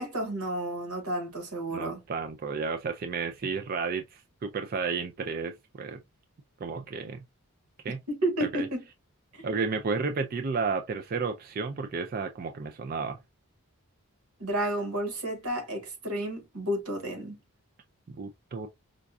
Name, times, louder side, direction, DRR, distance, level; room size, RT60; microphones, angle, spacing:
voice 1, 0.0-2.0 8.1-8.8 9.3-9.4 14.4-17.4, right 1 dB, 90° right, 1.6 m, -31 dB
voice 2, 1.7-6.0 6.6-7.2 7.8-8.0 8.4-8.7 9.4-13.2 18.1-18.7, right 4 dB, 40° right, 0.3 m, -32 dB
5.0 x 2.3 x 2.5 m
head